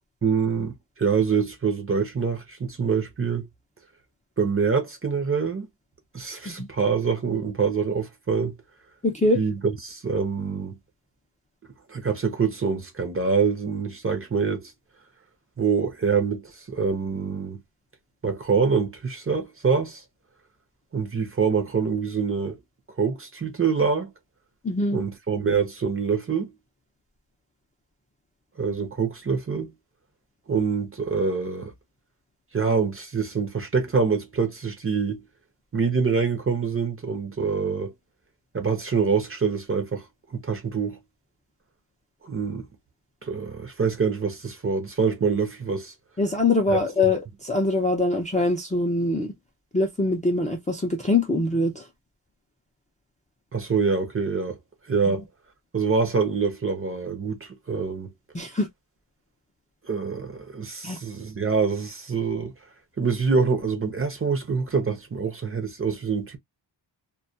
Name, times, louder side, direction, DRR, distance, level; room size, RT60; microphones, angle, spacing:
voice 1, 0.2-3.5 4.4-5.7 6.1-8.5 9.3-10.8 11.9-14.7 15.6-17.6 18.2-20.0 20.9-22.6 23.0-24.1 24.9-26.5 28.6-29.7 30.5-31.7 32.5-35.2 35.7-37.9 38.5-40.1 40.3-41.0 42.2-42.7 43.2-45.9 46.7-47.1 53.5-54.6 54.9-55.2 55.7-58.1 59.8-62.5 63.0-66.4, right 5 dB, 30° right, 0.6 m, -25 dB
voice 2, 9.0-9.4 24.6-25.0 46.2-49.3 49.7-51.8 55.1-55.2 58.3-58.7 60.8-61.0, left 2 dB, 15° left, 0.4 m, -23 dB
2.3 x 2.2 x 2.5 m
wide cardioid pair, 160°, 46 cm